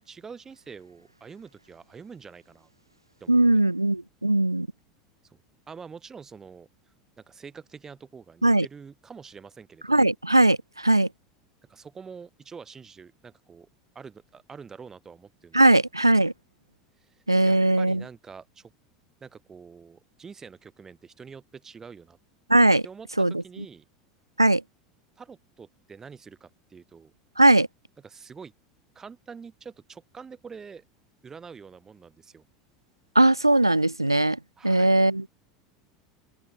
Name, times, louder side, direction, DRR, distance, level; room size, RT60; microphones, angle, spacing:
voice 1, 0.0-2.7 3.2-3.4 5.2-5.4 5.7-6.7 7.2-10.1 11.7-13.7 13.9-15.6 17.0-18.7 19.2-22.2 22.8-23.9 25.2-27.1 28.0-28.5 28.9-30.8 31.2-32.5 34.6-34.9, right 5 dB, 20° right, 4.2 m, -46 dB
voice 2, 3.3-4.7 8.4-8.7 9.9-11.1 15.5-16.3 17.3-18.0 22.5-22.8 23.2-23.3 24.4-24.6 27.4-27.7 33.1-34.4 34.6-35.3, right 2 dB, 90° right, 0.9 m, -19 dB
open air
figure-of-eight pair, 80°, 2 cm